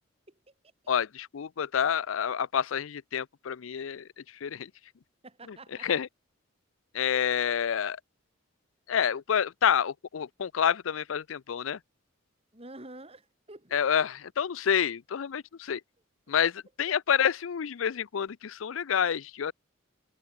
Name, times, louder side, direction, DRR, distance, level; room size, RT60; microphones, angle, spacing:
voice 1, 0.9-4.7 5.8-6.1 6.9-8.0 8.9-11.8 13.7-15.8 16.3-19.5, left 8 dB, 85° left, 0.5 m, -28 dB
voice 2, 5.2-5.9 7.1-7.3 12.5-14.1 16.3-16.4, right 2 dB, 30° right, 4.8 m, -49 dB
head